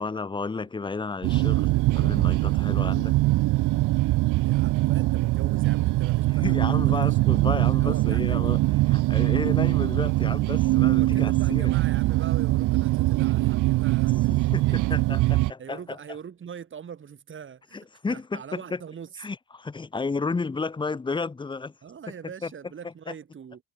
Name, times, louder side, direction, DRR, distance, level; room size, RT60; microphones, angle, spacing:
voice 1, 0.0-3.1 6.4-8.6 8.9-11.7 14.5-16.0 17.7-18.4 18.7-18.8 19.2-21.7, left 4 dB, 15° left, 0.9 m, -32 dB
sound 1, 1.2-15.5, right 19 dB, 65° right, 0.5 m, -22 dB
voice 2, 4.4-8.6 9.4-9.6 10.0-10.1 10.9-14.8 15.6-17.8 18.1-19.2 21.8-23.6, right 7 dB, 35° right, 5.5 m, -42 dB
cardioid pair, 150°, 34 cm